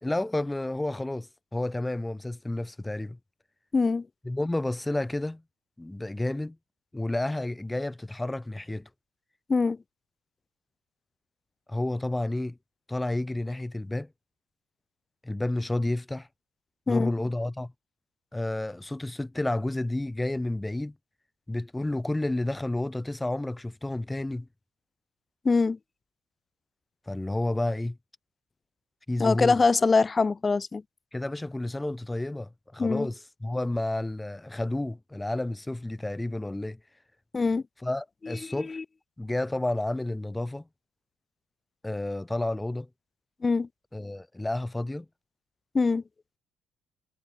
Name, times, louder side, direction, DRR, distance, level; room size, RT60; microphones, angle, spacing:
voice 1, 0.0-3.2 4.2-5.4 5.8-6.6 6.9-8.9 11.7-12.6 12.9-14.1 15.2-16.3 16.9-17.7 18.3-20.9 21.5-24.5 27.1-28.0 29.1-29.6 31.1-36.8 37.8-38.8 39.2-40.6 41.8-42.9 43.9-45.1, left 1 dB, 10° left, 2.9 m, -30 dB
voice 2, 3.7-4.1 9.5-9.8 16.9-17.1 25.4-25.8 29.2-30.8 32.8-33.1 37.3-37.6 38.2-38.8 43.4-43.7 45.7-46.0, left 4 dB, 30° left, 0.7 m, -24 dB
supercardioid pair, 80°, 0 cm